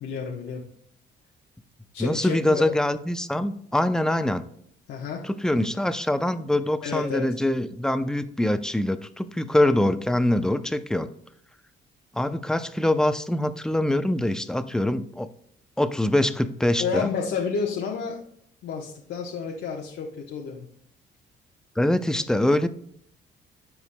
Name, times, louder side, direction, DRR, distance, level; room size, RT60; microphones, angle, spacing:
voice 1, 0.0-0.6 1.9-2.7 4.9-5.2 6.8-7.4 16.8-18.2 18.6-20.7, left 5 dB, 75° left, 0 dB, 1.0 m, -30 dB
voice 2, 2.0-4.5 5.2-11.1 12.1-15.3 15.8-17.1 21.8-22.7, left 1 dB, 5° left, 11 dB, 0.5 m, -24 dB
14.0 x 4.7 x 2.2 m, 0.65 s
cardioid pair, 90°, 20 cm